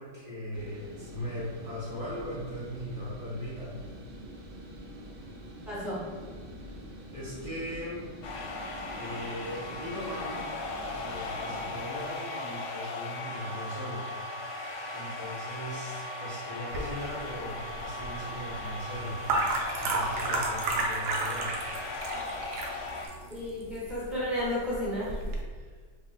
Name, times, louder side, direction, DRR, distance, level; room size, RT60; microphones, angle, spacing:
voice 1, 0.0-3.8 7.1-8.2 8.9-10.5 10.9-14.0 14.9-19.2 19.7-21.6 25.5-25.7, equal, 45° left, -10 dB, 0.4 m, -39 dB
sound 1, 0.5-11.8, equal, 60° right, 0.8 m, -45 dB
voice 2, 5.7-6.0 23.3-25.2, left 1 dB, ahead, -9 dB, 0.6 m, -32 dB
sound 2, 8.2-23.1, left 2 dB, 75° left, 1.1 m, -38 dB
sound 3, 16.7-25.4, right 2 dB, 80° right, 1.2 m, -33 dB
2.9 x 2.4 x 4.0 m, 1.5 s
omnidirectional pair, 1.9 m